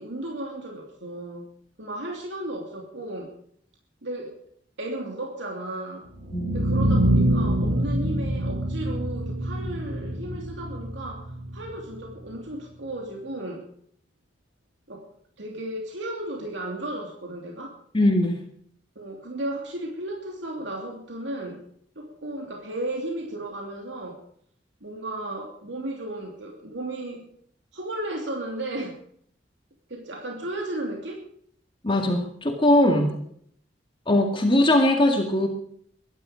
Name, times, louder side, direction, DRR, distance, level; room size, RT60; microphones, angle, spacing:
voice 1, 0.0-1.5 1.8-3.4 4.0-4.4 4.8-6.0 6.5-13.7 14.9-15.1 15.4-17.7 18.9-21.6 21.9-24.2 24.8-27.2 27.7-29.0 29.9-31.2 33.0-33.2, right 1 dB, 80° right, 1 dB, 2.9 m, -34 dB
sound 1, 6.1-12.2, right 1 dB, 40° right, 5.8 m, -25 dB
voice 2, 17.9-18.4 31.8-33.1 34.1-35.5, left 1 dB, 30° left, 2 dB, 2.1 m, -20 dB
22.5 x 11.5 x 5.1 m, 0.65 s
head